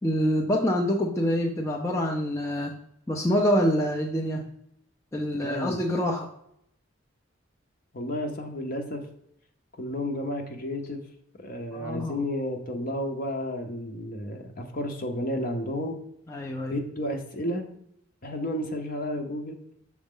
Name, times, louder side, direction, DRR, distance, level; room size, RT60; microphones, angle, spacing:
voice 1, 0.0-2.8 3.1-4.4 5.1-6.3 11.7-12.2 16.3-16.8, equal, 15° left, -1 dB, 0.5 m, -26 dB
voice 2, 5.4-5.8 7.9-9.0 9.8-11.0 11.4-16.0 16.7-17.7 18.2-19.6, left 1 dB, 45° left, 3 dB, 0.9 m, -32 dB
6.2 x 4.0 x 3.8 m, 0.73 s
head